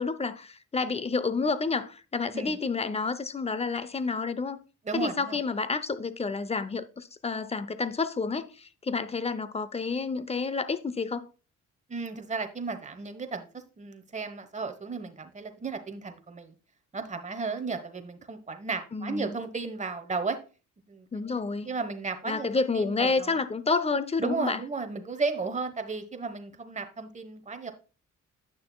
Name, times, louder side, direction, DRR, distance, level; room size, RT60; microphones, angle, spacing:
voice 1, 0.0-4.6 4.9-11.3 18.9-19.4 21.1-21.7 22.3-24.6, left 4 dB, 20° left, 0.6 m, -29 dB
voice 2, 4.8-5.4 11.9-13.5 13.8-16.5 16.9-20.4 20.9-23.4 24.2-27.7, right 4 dB, 25° right, 1.1 m, -34 dB
9.2 x 6.3 x 2.3 m
cardioid pair, 90°, 30 cm